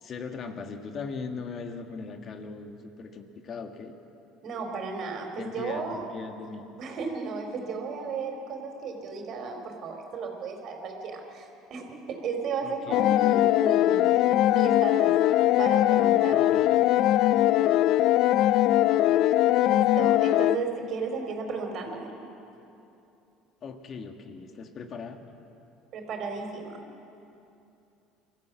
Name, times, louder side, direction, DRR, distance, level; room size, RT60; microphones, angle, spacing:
voice 1, 0.0-4.0 5.4-6.6 12.6-13.0 16.3-16.7 23.6-25.2, left 5 dB, 45° left, 6 dB, 1.9 m, -39 dB
voice 2, 4.4-6.0 6.8-14.0 14.5-15.2 15.6-16.4 19.6-22.1 25.9-26.8, right 4 dB, 55° right, 3 dB, 4.0 m, -34 dB
sound 1, 12.9-20.6, left 13 dB, 60° left, 0.5 m, -21 dB
23.5 x 14.5 x 8.4 m, 2.8 s
hypercardioid pair, 70°, 0 cm